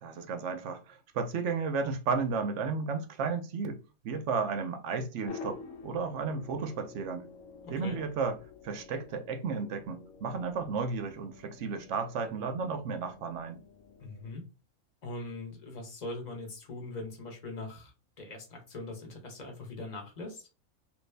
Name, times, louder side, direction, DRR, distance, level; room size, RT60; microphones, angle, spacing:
voice 1, 0.0-3.8 4.0-7.3 7.7-8.4 8.6-13.6, right 5 dB, 65° right, 0.8 m, -33 dB
sound 1, 5.2-14.3, left 5 dB, 70° left, 1.0 m, -49 dB
voice 2, 7.6-8.0 14.0-14.4 15.0-20.4, left 2 dB, 35° left, 1.0 m, -41 dB
3.1 x 2.6 x 3.2 m
omnidirectional pair, 1.6 m